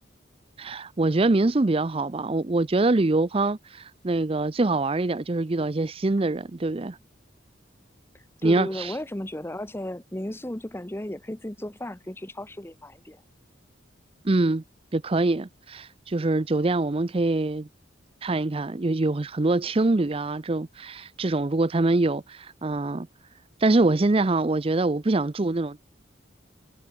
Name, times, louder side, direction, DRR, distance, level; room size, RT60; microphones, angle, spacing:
voice 1, 0.6-7.0 8.4-8.9 14.2-14.6 14.9-17.7 18.2-23.1 23.6-25.8, right 2 dB, 30° right, 0.5 m, -24 dB
voice 2, 8.4-13.2, left 1 dB, 10° left, 1.0 m, -34 dB
head